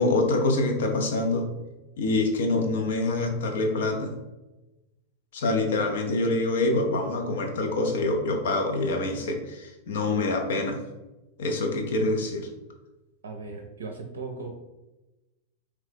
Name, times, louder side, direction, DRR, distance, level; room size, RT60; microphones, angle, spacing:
voice 1, 0.0-1.5 2.0-4.1 5.3-10.8 11.4-12.5, left 2 dB, 60° left, 3 dB, 0.7 m, -25 dB
voice 2, 13.2-14.6, right 4 dB, 65° right, 2 dB, 0.5 m, -37 dB
3.6 x 3.2 x 3.4 m, 1.0 s
figure-of-eight pair, 90°, 0 cm